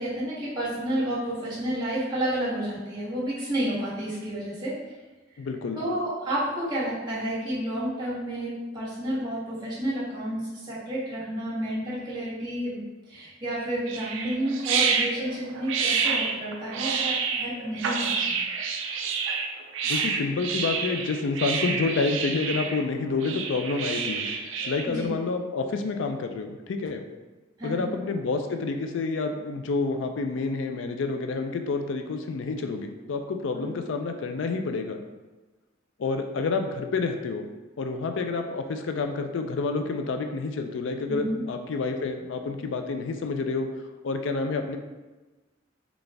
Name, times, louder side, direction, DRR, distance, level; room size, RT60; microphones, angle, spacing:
voice 1, 0.0-4.7 5.7-12.8 13.1-18.4 24.8-25.1 27.6-27.9 33.5-33.6 41.1-41.4, right 1 dB, 20° right, -10 dB, 1.3 m, -30 dB
voice 2, 5.4-5.8 19.8-24.3 24.7-27.0 27.6-35.0 36.0-37.5 37.8-43.7 44.0-44.8, left 4 dB, 70° left, 6 dB, 0.4 m, -29 dB
sound 1, 13.9-24.8, right 5 dB, 75° right, 0.4 m, -28 dB
4.0 x 2.4 x 3.3 m, 1.2 s
head